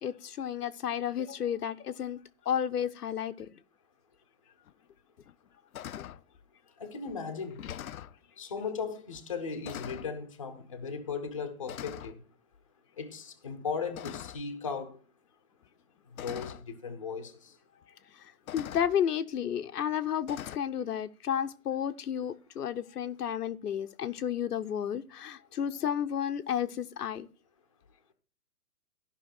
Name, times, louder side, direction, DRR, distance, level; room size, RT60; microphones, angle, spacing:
voice 1, 0.0-2.2 2.4-3.5 18.5-27.3, left 9 dB, 90° left, 1.0 m, -32 dB
sound 1, 4.7-4.8 5.3-5.5 5.7-6.2 7.1-7.2 7.5-8.2 9.1-9.3 9.6-10.1 11.1-11.3 11.7-12.2 13.9-14.5 15.6-15.7 16.2-16.6 17.8-17.9 18.5-19.0 20.3-20.6, left 11 dB, 65° left, 0.5 m, -42 dB
voice 2, 6.8-7.6 8.4-12.2 13.0-15.0 16.2-17.5, left 5 dB, 20° left, 0.7 m, -37 dB
14.0 x 5.8 x 4.3 m
hypercardioid pair, 180°, 45 cm